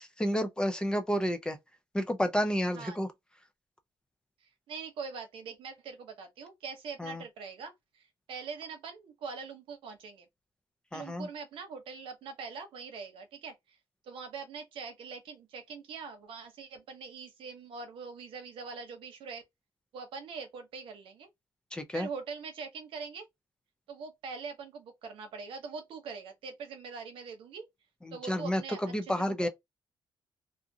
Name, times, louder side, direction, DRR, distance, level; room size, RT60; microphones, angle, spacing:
voice 1, 0.0-1.6 1.9-3.1 7.0-7.2 10.9-11.3 21.7-22.1 28.0-29.5, equal, 10° left, 0.4 m, -30 dB
voice 2, 4.4-10.3 10.9-13.8 14.0-19.4 19.9-21.3 21.9-23.3 23.9-27.7 28.1-29.5, right 5 dB, 80° right, 0.8 m, -43 dB
2.5 x 2.4 x 2.7 m
cardioid pair, 160°, 9 cm